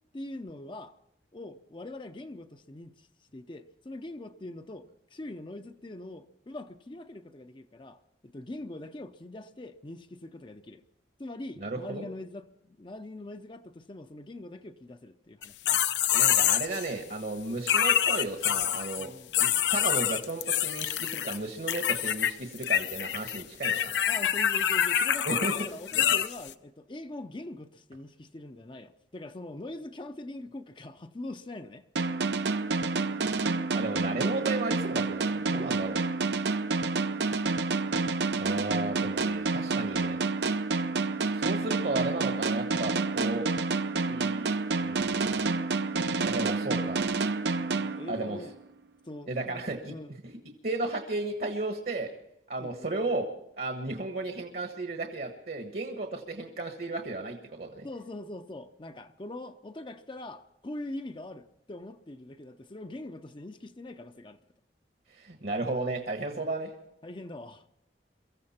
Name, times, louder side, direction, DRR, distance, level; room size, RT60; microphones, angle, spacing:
voice 1, 0.1-1.0 1.3-10.8 11.2-15.8 19.0-19.4 24.1-31.9 35.5-35.9 41.6-41.8 47.7-48.6 49.0-50.1 52.6-52.9 57.8-64.4 66.3-66.4 67.0-67.6, left 1 dB, 25° left, 0.6 m, -43 dB
voice 2, 11.6-12.0 16.1-19.1 19.4-24.0 25.2-25.7 33.7-36.0 38.3-40.2 40.5-40.6 41.3-43.5 44.1-45.5 46.2-47.0 48.1-48.4 49.3-49.9 50.6-52.1 52.5-57.9 65.1-66.7, right 2 dB, 55° right, 1.3 m, -34 dB
sound 1, 15.4-16.9 17.7-19.1 19.3-21.4 21.7-22.3 22.6-26.5, left 10 dB, 80° left, 0.7 m, -26 dB
sound 2, 32.0-48.6, right 3 dB, 70° right, 0.7 m, -29 dB
23.5 x 14.5 x 4.3 m
head